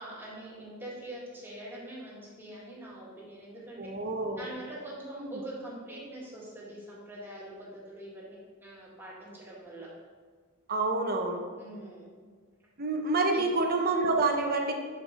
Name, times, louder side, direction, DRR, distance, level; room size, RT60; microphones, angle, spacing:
voice 1, 0.0-3.9 4.4-9.9 11.6-12.1 13.3-13.4, right 1 dB, 10° right, -7 dB, 2.0 m, -44 dB
voice 2, 3.8-4.4 5.2-5.3 10.7-11.4 12.8-14.7, right 3 dB, 45° right, 3 dB, 0.9 m, -28 dB
7.5 x 5.6 x 3.6 m, 1.5 s
head